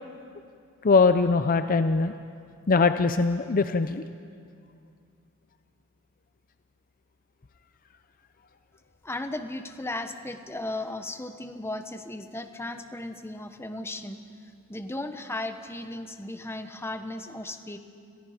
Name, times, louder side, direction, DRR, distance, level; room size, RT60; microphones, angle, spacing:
voice 1, 0.8-2.1 2.7-4.0, left 4 dB, 40° left, 9 dB, 0.6 m, -21 dB
voice 2, 9.0-14.2 14.7-17.8, left 2 dB, 10° left, 7 dB, 1.1 m, -36 dB
29.5 x 22.0 x 5.1 m, 2.4 s
head